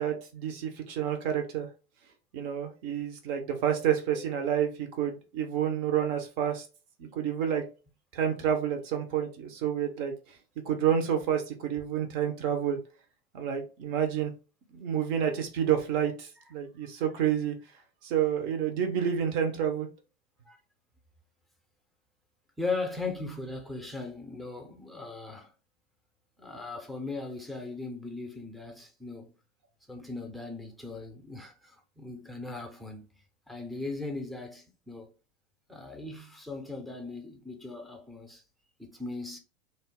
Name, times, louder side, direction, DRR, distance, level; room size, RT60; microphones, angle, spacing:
voice 1, 0.0-1.7 2.3-6.6 7.0-7.6 8.1-10.1 10.6-12.8 13.3-14.3 14.7-17.6 18.0-19.9, right 9 dB, 55° right, 0.9 m, -29 dB
voice 2, 22.6-25.5 26.4-29.3 29.9-33.1 33.5-35.1 35.7-38.4 38.8-39.4, left 3 dB, ahead, 0.6 m, -38 dB
2.7 x 2.0 x 3.6 m
hypercardioid pair, 95°, 31 cm